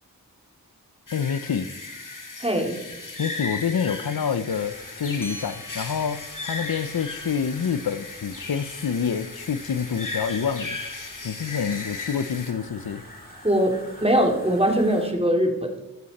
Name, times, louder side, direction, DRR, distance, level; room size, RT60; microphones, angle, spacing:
voice 1, 1.1-1.7 3.2-10.8 11.2-13.0, left 7 dB, 85° left, 0.7 m, -27 dB
sound 1, 1.1-12.5, left 3 dB, 60° left, 2.2 m, -36 dB
voice 2, 2.4-2.8 13.4-15.7, equal, 15° right, 2.8 m, -22 dB
sound 2, 4.5-15.1, equal, 25° left, 5.2 m, -48 dB
sound 3, 5.2-10.0, equal, 5° left, 4.6 m, -48 dB
15.0 x 12.5 x 4.2 m
wide cardioid pair, 45°, 35 cm